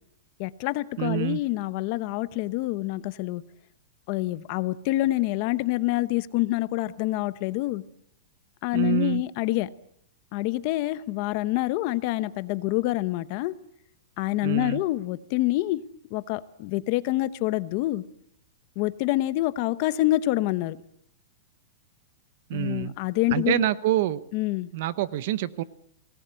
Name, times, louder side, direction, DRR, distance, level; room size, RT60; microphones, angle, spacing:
voice 1, 0.4-3.4 4.1-7.8 8.6-9.7 10.3-13.5 14.2-15.8 16.1-18.0 18.8-20.8 22.5-23.7 24.3-24.7, left 17 dB, 35° left, 15 dB, 0.9 m, -26 dB
voice 2, 1.0-1.4 8.7-9.2 14.4-14.8 22.5-22.9 23.3-24.2 24.7-25.6, right 14 dB, 45° right, 16 dB, 0.9 m, -26 dB
25.5 x 18.5 x 8.2 m, 0.72 s
supercardioid pair, 175°, 0 cm